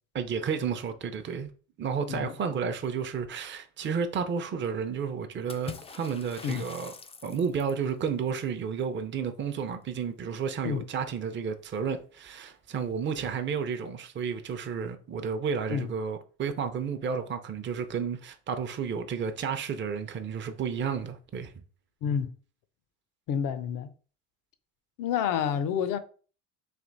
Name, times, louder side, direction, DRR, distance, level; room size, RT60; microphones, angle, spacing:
voice 1, 0.1-1.5 1.8-6.9 7.2-21.5, right 6 dB, 30° right, 0.6 m, -32 dB
Water / Splash splatter, 5.5-7.9, left 4 dB, 15° left, 0.4 m, -43 dB
voice 2, 22.0-22.3 23.3-23.9 25.0-26.0, left 8 dB, 65° left, 0.7 m, -29 dB
3.4 x 2.8 x 4.0 m
supercardioid pair, 80°, 36 cm